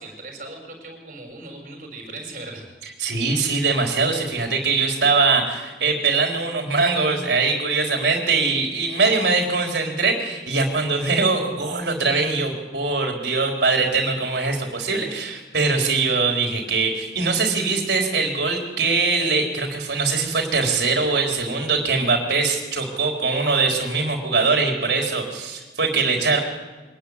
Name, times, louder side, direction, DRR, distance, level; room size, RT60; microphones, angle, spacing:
voice 1, 0.0-2.7, right 2 dB, 50° right, 2 dB, 6.5 m, -38 dB
voice 2, 3.0-26.4, right 4 dB, 75° right, 1 dB, 4.2 m, -22 dB
24.0 x 12.5 x 9.8 m, 1.3 s
head